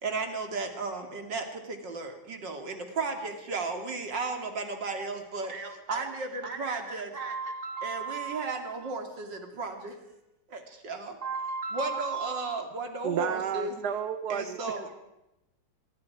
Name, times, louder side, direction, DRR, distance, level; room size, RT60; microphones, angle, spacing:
voice 1, 0.0-5.5 5.9-7.1 7.8-9.9 10.8-11.1 11.7-13.7 14.3-14.9, right 3 dB, 80° right, 5 dB, 3.2 m, -34 dB
voice 2, 5.5-6.1 6.4-9.0 11.2-12.6, right 5 dB, 30° right, 5 dB, 2.3 m, -37 dB
voice 3, 13.0-14.6, right 9 dB, 65° right, 10 dB, 1.4 m, -31 dB
25.0 x 23.5 x 4.8 m, 0.92 s
omnidirectional pair, 1.9 m